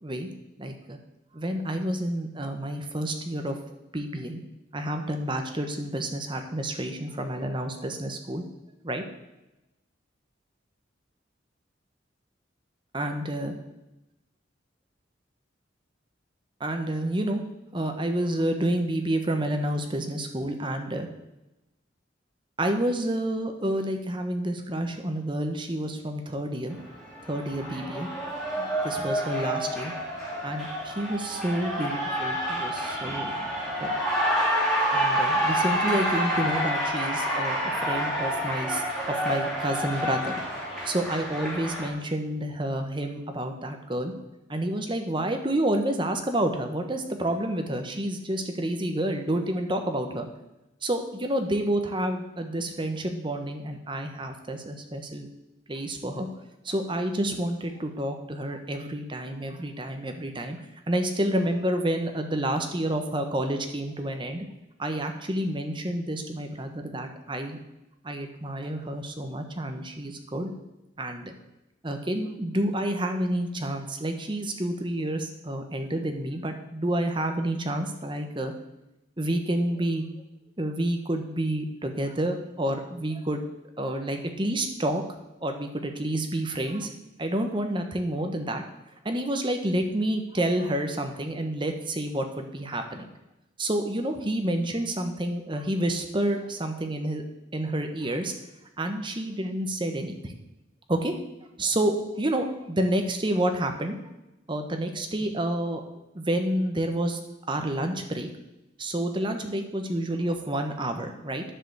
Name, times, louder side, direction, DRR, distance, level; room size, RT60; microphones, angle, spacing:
voice 1, 0.6-1.0 1.3-3.6 3.9-4.4 4.7-8.4 8.8-9.0 12.9-13.5 16.6-17.4 17.7-21.1 22.6-26.8 27.3-28.1 28.6-29.9 30.4-33.3 33.8-33.9 34.9-40.3 40.8-44.1 44.5-50.3 50.8-55.3 55.7-56.3 56.6-60.6 60.9-64.4 64.8-67.6 68.0-70.5 71.0-71.3 71.8-78.5 79.2-80.0 80.6-83.4 83.8-85.0 85.4-86.9 87.2-88.6 89.0-93.1 93.6-97.2 97.5-98.3 98.8-100.3 100.9-101.2 101.6-104.0 104.5-105.8 106.1-107.2 107.5-108.3 108.8-111.4, right 1 dB, 25° right, 5 dB, 1.1 m, -29 dB
Cheering, 26.7-41.9, equal, ahead, 2.8 m, -28 dB
10.0 x 5.0 x 7.8 m, 0.93 s
head